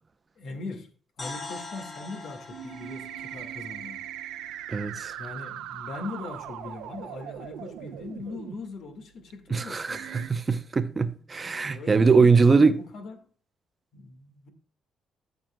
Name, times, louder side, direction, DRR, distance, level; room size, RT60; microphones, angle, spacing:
voice 1, 0.4-0.9 1.2-4.0 5.2-10.1 11.5-13.3 13.9-14.5, left 3 dB, 70° left, 1.7 m, -40 dB
sound 1, 1.2-5.1, left 3 dB, 30° left, 2.5 m, -43 dB
sound 2, 2.5-8.6 9.3-9.4 9.9-10.3, right 11 dB, 90° right, 0.5 m, -39 dB
voice 2, 4.7-5.1 9.5-12.7, right 4 dB, 30° right, 0.6 m, -21 dB
13.0 x 6.2 x 2.3 m
cardioid pair, 90°, 0 cm